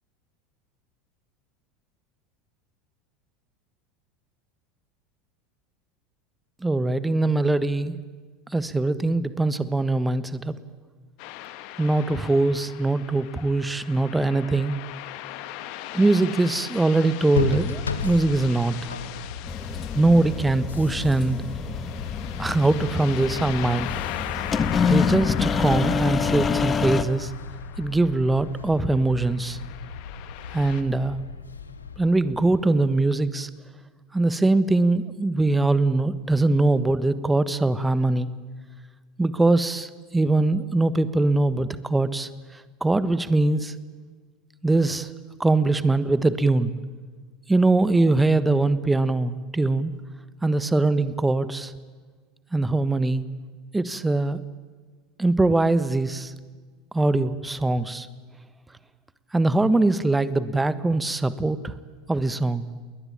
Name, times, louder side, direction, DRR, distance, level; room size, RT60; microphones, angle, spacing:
voice 1, 6.6-8.0 8.5-10.5 11.8-14.7 15.9-18.9 19.9-21.4 22.4-23.9 24.8-27.3 27.8-29.6 30.5-31.2 32.0-33.5 34.1-38.3 39.2-43.7 44.6-45.1 45.4-46.7 47.5-49.9 50.4-51.7 52.5-53.2 53.7-54.4 55.2-56.3 56.9-58.1 59.3-61.7 62.1-62.7, right 2 dB, 10° right, 14 dB, 1.3 m, -22 dB
sound 1, 11.2-28.5 29.1-30.8, left 13 dB, 55° left, 1.9 m, -39 dB
sound 2, 17.3-33.0, left 4 dB, 85° left, 1.6 m, -36 dB
sound 3, 19.5-27.0, left 6 dB, 25° left, 1.7 m, -27 dB
29.5 x 21.0 x 8.9 m, 1.5 s
figure-of-eight pair, 80°, 0 cm